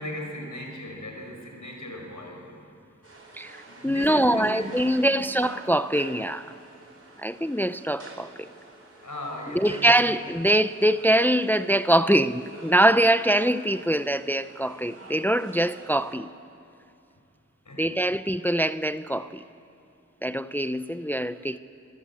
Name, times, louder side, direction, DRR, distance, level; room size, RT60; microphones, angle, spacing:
voice 1, 0.0-2.6 3.7-5.1 9.0-9.9 17.6-18.0, left 1 dB, 80° left, 5.0 m, -37 dB
sound 1, 3.0-16.1, right 2 dB, 55° right, 5.0 m, -47 dB
voice 2, 3.3-6.5 7.2-8.5 9.5-16.3 17.8-19.4 20.2-21.6, right 1 dB, 5° left, 0.5 m, -23 dB
27.0 x 15.5 x 8.5 m
wide cardioid pair, 40°, 30 cm